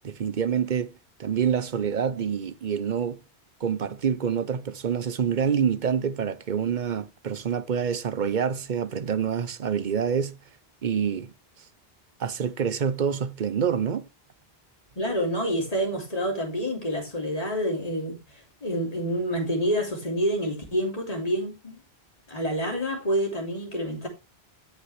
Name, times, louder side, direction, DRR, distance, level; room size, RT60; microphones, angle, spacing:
voice 1, 0.0-0.9 1.2-3.2 3.6-10.4 10.8-11.3 12.2-14.1, right 7 dB, 50° right, 0.8 m, -27 dB
voice 2, 15.0-18.2 18.6-21.8 22.3-24.1, equal, 35° left, 3.1 m, -27 dB
15.0 x 5.9 x 3.2 m
omnidirectional pair, 1.1 m